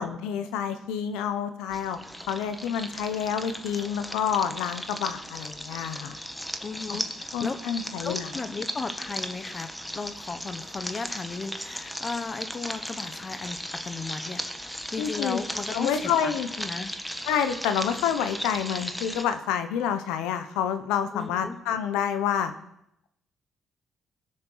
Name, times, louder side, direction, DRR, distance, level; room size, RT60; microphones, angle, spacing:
voice 1, 0.0-2.0 2.3-6.2 6.9-7.0 7.3-8.3 15.0-15.4 15.7-16.5 17.2-22.5, left 8 dB, 90° left, 9 dB, 1.1 m, -28 dB
sound 1, 1.7-19.2, equal, 5° left, 1.3 m, -37 dB
voice 2, 6.6-7.6 8.0-17.0 21.1-21.6, left 4 dB, 40° left, 9 dB, 1.2 m, -36 dB
19.0 x 6.7 x 5.8 m, 0.79 s
supercardioid pair, 65°, 0 cm